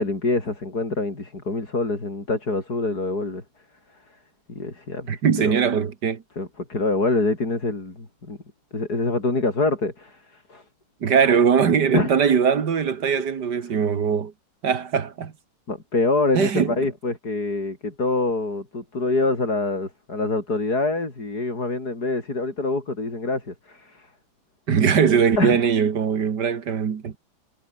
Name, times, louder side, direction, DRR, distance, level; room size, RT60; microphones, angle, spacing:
voice 1, 0.0-3.4 4.6-5.2 5.4-5.5 6.4-8.4 8.7-10.6 11.9-12.2 15.7-24.1 25.4-25.6, left 3 dB, 50° left, 5.7 m, -25 dB
voice 2, 5.1-6.2 11.0-14.3 14.6-15.3 16.3-16.7 24.7-27.1, right 7 dB, 60° right, 2.2 m, -21 dB
omnidirectional pair, 2.1 m